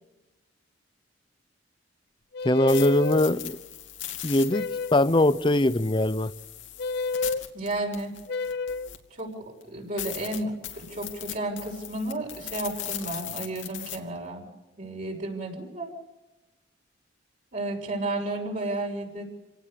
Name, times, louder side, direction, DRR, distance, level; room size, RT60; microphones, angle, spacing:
sound 1, 2.3-3.3 4.5-5.1 6.8-7.4 8.3-8.9, left 4 dB, 60° left, 0.7 m, -30 dB
sound 2, 2.4-9.2 9.6-9.7 10.0-14.0, left 12 dB, 75° left, 2.7 m, -39 dB
voice 1, 2.4-3.6 4.2-6.3, left 1 dB, 25° left, 0.8 m, -22 dB
voice 2, 7.5-8.2 9.2-14.4 14.8-15.9 17.5-19.3, right 2 dB, 45° right, 6.0 m, -32 dB
27.5 x 18.5 x 6.8 m
head